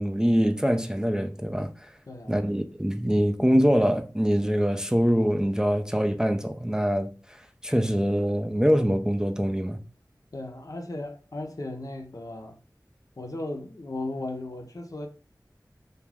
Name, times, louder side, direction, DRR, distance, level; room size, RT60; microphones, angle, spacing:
voice 1, 0.0-1.9 2.3-7.1 7.6-9.8, equal, 10° right, 0.3 m, -24 dB
voice 2, 2.1-2.4 10.3-12.6 13.2-15.1, left 2 dB, 55° left, 0.5 m, -36 dB
2.3 x 2.2 x 3.2 m
wide cardioid pair, 40°, 7 cm